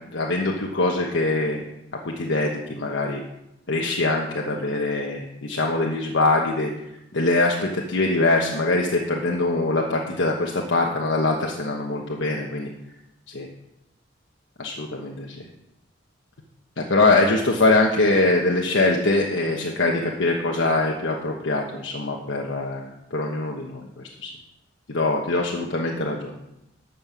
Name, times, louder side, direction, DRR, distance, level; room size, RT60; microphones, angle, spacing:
voice 1, 0.1-1.6 2.0-3.2 3.7-6.7 7.1-12.7 13.3-13.5 14.6-15.4 16.8-23.8 24.2-24.3 24.9-26.3, left 2 dB, 75° left, -1 dB, 1.2 m, -23 dB
12.5 x 5.5 x 7.4 m, 0.87 s
head